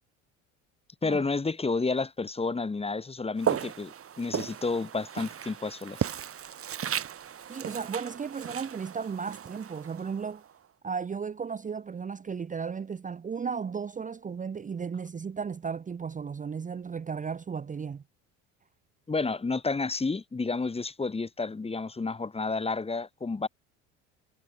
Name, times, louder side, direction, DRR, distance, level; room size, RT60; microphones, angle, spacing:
voice 1, 1.0-6.0 19.1-23.5, left 3 dB, 15° left, 1.4 m, -30 dB
Walk footsteps, 3.4-10.5, right 9 dB, 35° right, 1.7 m, -35 dB
voice 2, 7.5-10.4 10.8-18.0, right 6 dB, 20° right, 0.8 m, -35 dB
hypercardioid pair, 75°, 38 cm